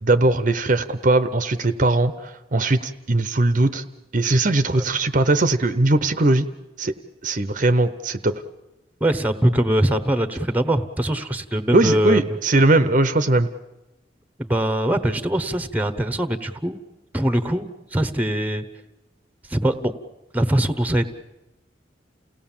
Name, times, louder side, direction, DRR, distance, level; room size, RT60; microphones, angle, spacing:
voice 1, 0.0-3.8 4.1-6.5 6.8-6.9 7.2-8.4 11.7-13.5, right 2 dB, 45° right, 11 dB, 0.8 m, -20 dB
voice 2, 9.0-12.4 14.4-16.8 17.1-18.6 19.5-19.9 20.3-21.1, right 1 dB, 10° right, 12 dB, 1.0 m, -22 dB
29.0 x 17.5 x 7.4 m, 0.99 s
head